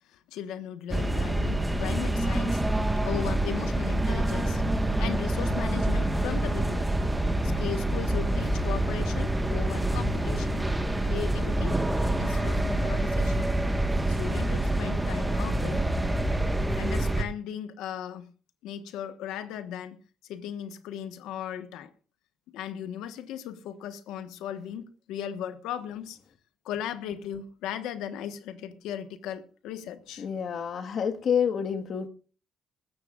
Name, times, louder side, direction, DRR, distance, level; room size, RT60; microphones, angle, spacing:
voice 1, 0.1-2.6 3.0-4.6 5.0-6.9 7.4-10.7 11.0-11.8 12.2-13.5 14.1-15.9 16.8-18.3 18.6-20.0 20.2-21.9 22.5-26.2 26.6-30.2, left 9 dB, 90° left, 1.4 m, -37 dB
sound 1, 0.9-17.2, right 1 dB, 10° right, 1.6 m, -26 dB
voice 2, 30.2-32.1, left 7 dB, 55° left, 1.7 m, -28 dB
20.5 x 14.5 x 2.5 m
cardioid pair, 100°, 0 cm